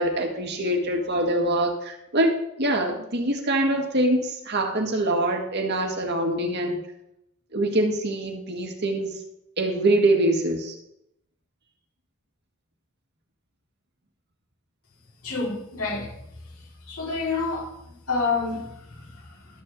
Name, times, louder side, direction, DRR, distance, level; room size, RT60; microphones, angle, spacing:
voice 1, 0.0-2.3 2.6-6.8 7.5-9.1 9.6-10.8, right 1 dB, 50° right, 1.8 m, -24 dB
voice 2, 15.2-16.1 16.9-17.7 18.1-19.6, left 4 dB, 90° left, 4.2 m, -29 dB
13.0 x 4.4 x 7.6 m
head